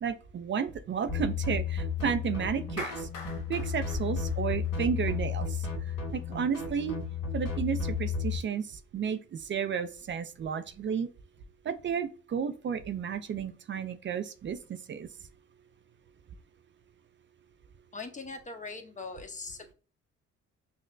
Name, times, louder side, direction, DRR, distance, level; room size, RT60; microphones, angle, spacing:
voice 1, 0.0-3.1 3.5-5.7 6.1-7.0 7.3-11.1 11.7-14.6 14.9-15.1, right 7 dB, 40° right, 0.4 m, -32 dB
sound 1, 1.1-8.4, left 5 dB, 55° left, 1.8 m, -33 dB
Clapping, 2.8-5.1, left 4 dB, 85° left, 0.8 m, -43 dB
voice 2, 17.9-19.7, left 3 dB, 25° left, 0.8 m, -41 dB
5.7 x 2.1 x 2.5 m
cardioid pair, 90°, 30 cm